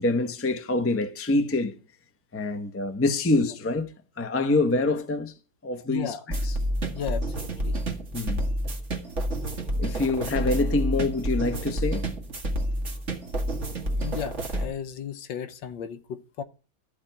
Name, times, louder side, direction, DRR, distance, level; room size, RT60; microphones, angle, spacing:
voice 1, 0.0-1.8 2.3-3.9 4.2-5.3 5.6-6.2 6.4-6.6 8.1-8.4 9.8-12.1, left 2 dB, 10° left, 0.6 m, -25 dB
voice 2, 5.9-6.2 6.9-7.7 14.0-16.4, left 8 dB, 70° left, 1.5 m, -35 dB
sound 1, 6.3-14.6, right 1 dB, 35° right, 2.2 m, -29 dB
14.0 x 4.9 x 8.8 m
omnidirectional pair, 2.2 m